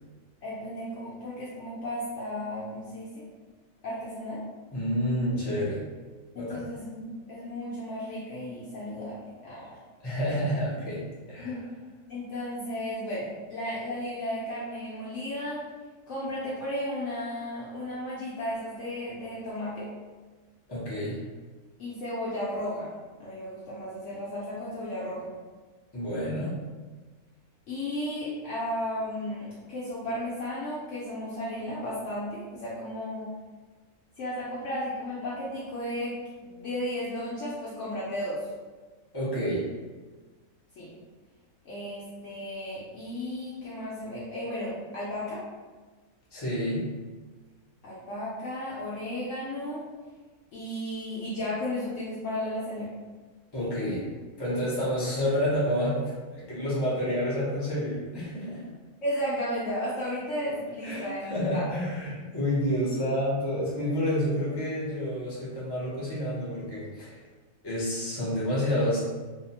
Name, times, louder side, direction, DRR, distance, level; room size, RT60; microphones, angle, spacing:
voice 1, 0.4-3.2 3.8-4.4 6.3-9.8 11.4-11.6 12.1-15.6 16.1-19.9 21.8-22.9 23.2-25.3 27.7-33.3 34.2-38.5 40.8-40.9 41.6-45.4 47.8-49.8 50.5-52.9 53.6-54.0 59.0-61.7, left 1 dB, 65° left, -8 dB, 0.8 m, -34 dB
voice 2, 4.7-5.9 6.3-6.7 10.0-11.6 20.7-21.2 25.9-26.6 39.1-39.7 46.3-46.9 53.5-54.1 54.4-58.6 60.8-67.2 67.6-69.2, equal, 35° left, -8 dB, 0.4 m, -29 dB
2.7 x 2.0 x 2.8 m, 1.3 s
omnidirectional pair, 1.6 m